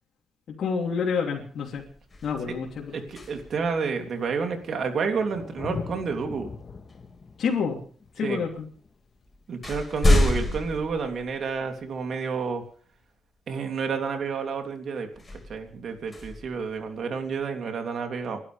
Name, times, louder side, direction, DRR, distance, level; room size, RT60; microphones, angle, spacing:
voice 1, 0.6-1.8 2.2-2.9 7.4-7.8 8.2-8.7, left 6 dB, 70° left, -3 dB, 3.1 m, -28 dB
sound 1, 1.0-1.3 1.7-3.8 5.9-6.1 6.9-7.7 8.5-8.6 9.0-11.9 12.4-12.5 15.1-17.3, left 2 dB, 25° left, 5.1 m, -28 dB
Thunder, 1.2-1.3 2.3-2.4 2.6-9.9 11.6-11.7, left 4 dB, 40° left, 1.9 m, -42 dB
voice 2, 2.9-6.5 8.2-8.4 9.5-12.6 13.5-18.4, right 5 dB, 65° right, 4 dB, 3.2 m, -30 dB
30.0 x 12.0 x 3.5 m, 0.43 s
cardioid pair, 85°, 0 cm